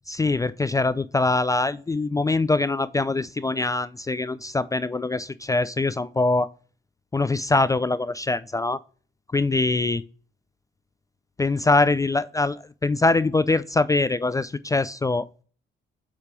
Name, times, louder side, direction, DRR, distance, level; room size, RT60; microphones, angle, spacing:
voice 1, 0.1-6.5 7.1-8.8 9.3-10.0 11.4-15.2, left 3 dB, 15° left, 15 dB, 0.3 m, -23 dB
8.2 x 2.9 x 4.9 m, 0.40 s
cardioid pair, 90°, 20 cm